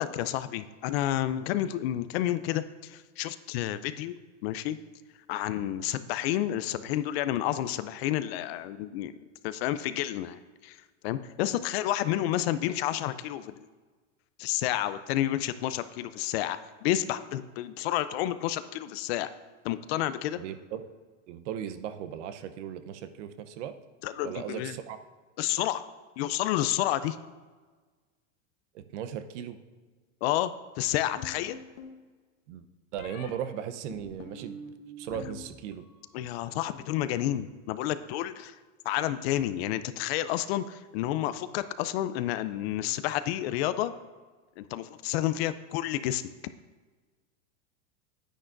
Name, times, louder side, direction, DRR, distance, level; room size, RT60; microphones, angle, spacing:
voice 1, 0.0-4.2 4.4-4.8 5.3-9.1 9.4-10.8 11.0-13.7 14.4-19.3 19.6-20.4 24.0-24.7 25.4-25.9 26.2-27.2 30.2-31.6 36.1-38.5 38.9-43.9 44.6-46.2, left 13 dB, 50° left, 13 dB, 0.5 m, -30 dB
voice 2, 20.4-20.8 21.3-23.7 24.2-25.0 28.7-29.6 32.5-32.6 32.9-34.6 35.0-35.8, right 9 dB, 60° right, 10 dB, 0.8 m, -37 dB
sound 1, 31.2-32.0 33.0-33.3 33.9-35.4 35.7-36.3, left 2 dB, 85° left, 1.2 m, -44 dB
9.9 x 9.4 x 2.5 m, 1.4 s
supercardioid pair, 135°, 40 cm